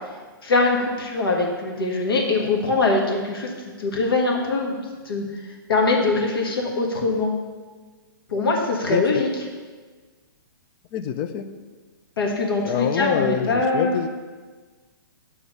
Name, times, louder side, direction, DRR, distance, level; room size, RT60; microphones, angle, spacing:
voice 1, 0.4-3.5 3.8-4.7 5.0-5.2 5.7-7.3 8.3-9.3 12.2-14.0, left 3 dB, 85° left, 0 dB, 1.5 m, -22 dB
voice 2, 8.9-9.2 10.9-11.5 12.6-14.1, left 8 dB, 30° left, 10 dB, 0.4 m, -25 dB
8.2 x 3.6 x 5.4 m, 1.4 s
hypercardioid pair, 150°, 12 cm